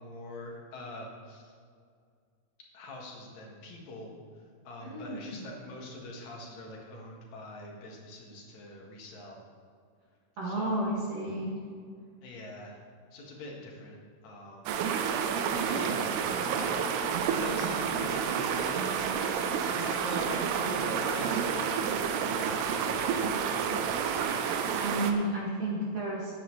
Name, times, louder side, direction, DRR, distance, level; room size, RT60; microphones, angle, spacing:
voice 1, 0.0-1.5 2.7-9.4 10.4-10.8 12.2-14.6 15.3-19.3 19.7-21.8 22.2-24.1, left 1 dB, 55° left, -1 dB, 2.6 m, -43 dB
voice 2, 4.8-5.4 10.4-11.6 19.4-19.6 24.7-26.3, right 1 dB, 50° right, -6 dB, 2.8 m, -32 dB
sound 1, 14.7-25.1, right 7 dB, 85° right, 2.8 m, -30 dB
14.5 x 9.4 x 3.2 m, 2.1 s
omnidirectional pair, 4.5 m